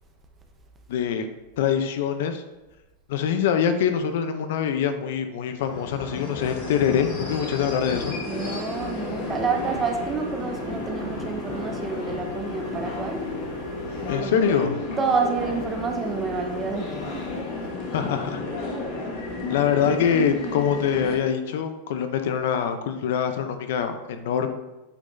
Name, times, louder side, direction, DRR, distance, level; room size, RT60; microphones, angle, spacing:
voice 1, 0.9-1.3 1.6-2.4 3.1-8.2 14.1-14.8 17.9-18.4 19.5-24.5, left 8 dB, 55° left, 8 dB, 0.6 m, -24 dB
sound 1, 5.5-21.2, left 2 dB, 35° left, 1.2 m, -32 dB
voice 2, 8.2-13.3 14.2-14.4 15.0-17.2, right 5 dB, 15° right, 4 dB, 0.6 m, -28 dB
8.2 x 5.7 x 2.7 m, 1.0 s
supercardioid pair, 175°, 0 cm